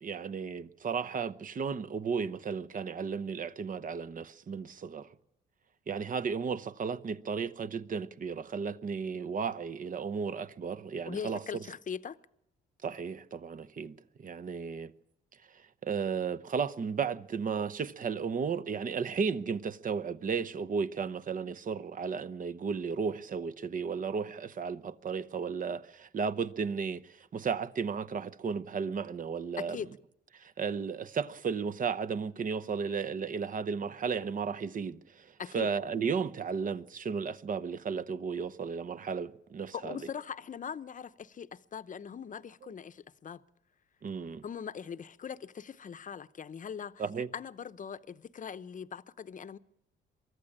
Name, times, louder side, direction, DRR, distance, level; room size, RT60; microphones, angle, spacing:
voice 1, 0.0-5.1 5.9-11.6 12.8-14.9 15.8-29.8 30.3-40.0 44.0-44.4 47.0-47.3, right 6 dB, 45° right, 0.9 m, -34 dB
voice 2, 11.1-12.2 29.6-29.9 35.4-35.7 39.7-43.4 44.4-47.0 47.3-49.6, left 7 dB, 40° left, 0.8 m, -41 dB
23.5 x 14.0 x 8.7 m
cardioid pair, 90°, 20 cm